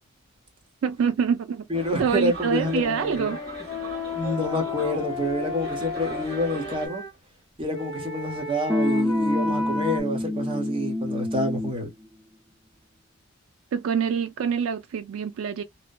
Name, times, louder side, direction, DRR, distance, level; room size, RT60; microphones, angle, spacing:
voice 1, 0.8-1.6 2.0-3.4 13.7-15.6, right 7 dB, 70° right, 0.3 m, -25 dB
voice 2, 1.7-3.3 4.1-7.0 7.6-11.9, left 1 dB, 25° right, 0.9 m, -28 dB
sound 1, 1.7-6.9, right 2 dB, 50° right, 1.5 m, -40 dB
Wind instrument woodwind instrument, 2.7-7.1 7.7-10.0, left 3 dB, 20° left, 0.8 m, -34 dB
sound 2, 8.7-11.9, left 2 dB, ahead, 0.5 m, -26 dB
3.1 x 2.1 x 2.2 m
head